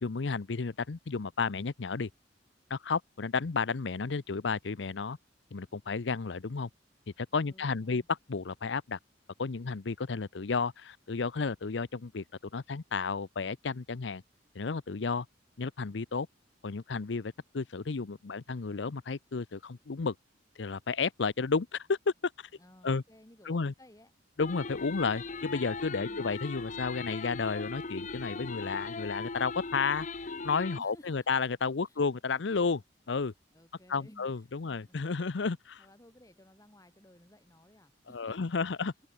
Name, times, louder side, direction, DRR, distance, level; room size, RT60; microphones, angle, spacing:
voice 1, 0.0-2.1 2.7-5.2 5.5-6.7 7.2-9.0 9.4-12.2 12.5-14.2 14.5-15.3 15.6-16.3 16.6-20.1 20.6-22.5 22.8-23.0 23.4-23.7 24.4-30.1 30.4-32.8 33.1-33.3 33.9-35.9 38.1-38.9, left 4 dB, 65° left, 0.6 m, -32 dB
voice 2, 7.4-8.1 22.6-24.1 25.9-26.3 30.7-31.3 31.9-32.0 33.5-34.3 34.6-35.0 35.8-38.8, left 1 dB, 20° left, 3.4 m, -57 dB
sound 1, 24.4-30.8, left 4 dB, 40° left, 1.0 m, -39 dB
head